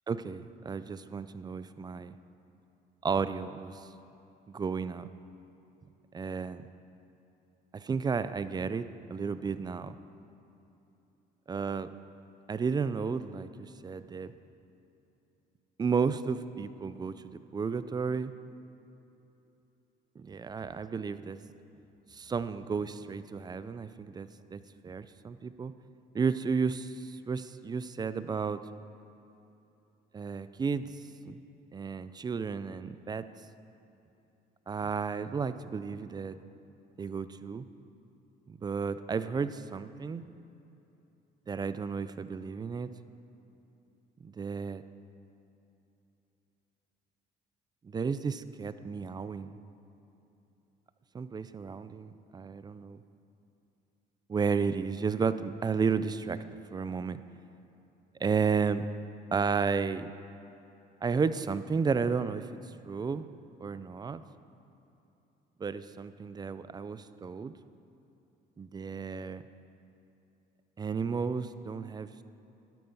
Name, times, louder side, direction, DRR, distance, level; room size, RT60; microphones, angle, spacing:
voice 1, 0.1-2.1 3.0-3.8 4.5-5.1 6.1-6.7 7.7-10.0 11.5-11.9 12.5-14.3 15.8-18.3 20.3-21.4 22.1-25.7 26.1-28.6 30.1-30.9 31.3-31.4 31.7-33.2 34.7-36.4 37.0-37.7 38.5-40.2 41.5-42.9 44.2-44.8 47.8-49.5 51.1-53.0 54.3-57.2 58.2-58.8 59.3-60.1 61.0-62.5 62.8-63.3 63.6-64.2 65.6-67.5 68.6-69.4 70.8-72.1, right 5 dB, 25° right, 13 dB, 0.5 m, -33 dB
12.0 x 11.5 x 5.5 m, 2.9 s
cardioid pair, 110°, 17 cm